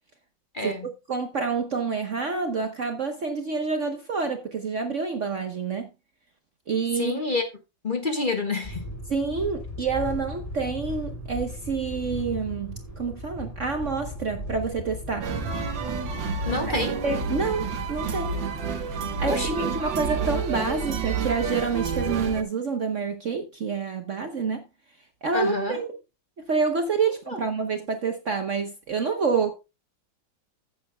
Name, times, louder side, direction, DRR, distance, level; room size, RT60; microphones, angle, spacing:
voice 1, 0.5-0.9 7.0-7.5 7.8-8.9 16.4-17.0 19.3-19.5 25.3-25.8 27.3-27.4, left 3 dB, 30° left, 1.4 m, -28 dB
voice 2, 1.1-5.9 6.7-7.2 9.1-15.3 16.6-16.7 17.0-18.4 19.2-24.6 25.2-25.9 26.5-29.5, right 4 dB, 50° right, 1.1 m, -28 dB
sound 1, 8.6-16.9, left 1 dB, 10° left, 3.8 m, -37 dB
sound 2, 15.2-22.4, right 5 dB, 75° right, 2.0 m, -29 dB
15.0 x 7.8 x 2.2 m
omnidirectional pair, 2.1 m